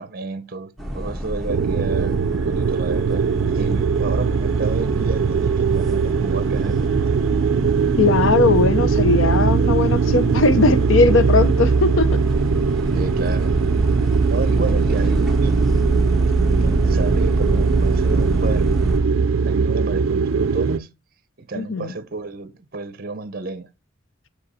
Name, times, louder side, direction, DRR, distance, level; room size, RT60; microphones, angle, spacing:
voice 1, 0.0-3.3 3.5-7.1 12.9-13.6 14.3-15.8 16.6-18.9 19.4-20.9 21.4-23.7, right 3 dB, 50° right, 0.7 m, -31 dB
sound 1, 0.8-19.0, right 1 dB, ahead, 1.4 m, -27 dB
sound 2, 1.5-20.8, right 5 dB, 80° right, 0.4 m, -20 dB
voice 2, 8.0-12.2 21.5-21.9, left 3 dB, 70° left, 0.7 m, -19 dB
6.8 x 5.1 x 4.2 m
head